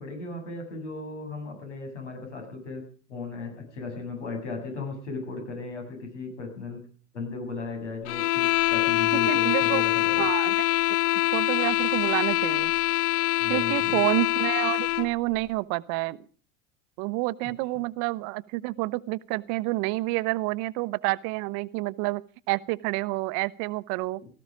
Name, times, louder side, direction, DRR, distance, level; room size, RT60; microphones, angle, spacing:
voice 1, 0.0-2.8 3.1-6.8 7.1-10.3 13.4-14.1 17.4-17.8 24.2-24.3, left 3 dB, 80° left, 7.8 m, -36 dB
sound 1, 8.1-15.1, left 19 dB, 45° left, 0.7 m, -24 dB
voice 2, 9.3-9.8 10.2-10.7 11.3-12.7 13.5-16.2 17.0-24.2, right 21 dB, 50° right, 0.9 m, -28 dB
18.5 x 14.0 x 5.1 m
hypercardioid pair, 85°, 35 cm